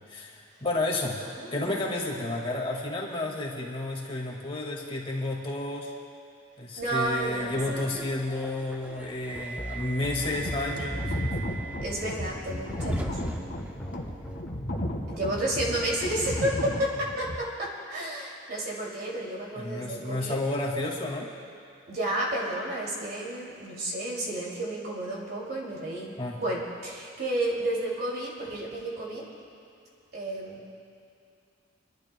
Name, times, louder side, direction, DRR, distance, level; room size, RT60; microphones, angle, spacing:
voice 1, 0.1-1.2 1.5-5.9 6.6-11.1 19.6-21.3 26.2-26.4, left 2 dB, 30° left, -3 dB, 1.9 m, -31 dB
voice 2, 1.2-2.1 6.8-7.9 11.8-13.2 15.1-20.4 21.9-29.2 30.1-30.6, right 1 dB, 55° right, -3 dB, 2.6 m, -31 dB
Subway metro underground, 6.8-14.4, right 2 dB, 5° right, 0.5 m, -42 dB
sound 1, 9.3-16.4, equal, 10° left, 1.1 m, -41 dB
sound 2, 10.2-17.4, left 1 dB, 65° left, 1.9 m, -34 dB
28.5 x 11.5 x 2.2 m, 2.5 s
head